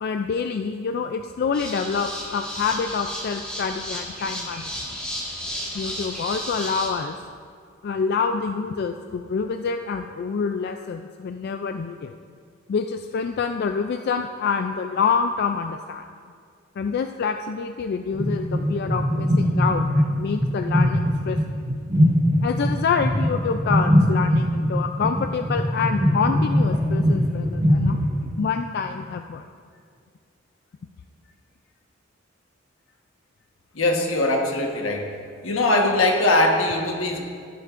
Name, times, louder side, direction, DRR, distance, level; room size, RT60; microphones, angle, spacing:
voice 1, 0.0-4.7 5.7-7.2 7.8-12.1 12.7-16.0 16.8-21.4 22.4-28.0 28.4-29.5, left 5 dB, 50° left, 6 dB, 0.3 m, -26 dB
sound 1, 1.5-6.9, equal, 5° left, 1.7 m, -33 dB
sound 2, 18.1-28.3, equal, 30° right, 1.7 m, -21 dB
voice 2, 33.7-35.1 35.4-37.2, left 2 dB, 85° left, 1 dB, 1.3 m, -21 dB
15.0 x 8.1 x 2.5 m, 2.2 s
head